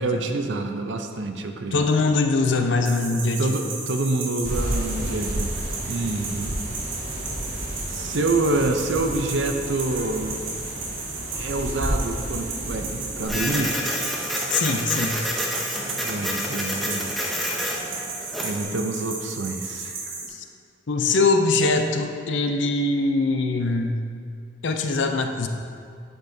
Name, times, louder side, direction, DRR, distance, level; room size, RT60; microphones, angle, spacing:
voice 1, 0.0-1.8 3.4-5.5 5.9-6.5 7.9-10.5 11.4-13.7 15.8-17.1 18.4-19.9, right 2 dB, 70° right, 6 dB, 0.6 m, -27 dB
voice 2, 1.7-3.6 14.5-15.2 20.3-20.4 20.9-24.0 24.6-25.5, left 3 dB, 70° left, 5 dB, 0.5 m, -22 dB
sound 1, 2.8-20.3, right 4 dB, 85° right, 1.8 m, -34 dB
sound 2, 4.4-13.6, equal, 35° right, 1.5 m, -32 dB
Printer, 13.3-18.6, equal, ahead, 0.7 m, -29 dB
11.5 x 5.3 x 2.7 m, 2.2 s
head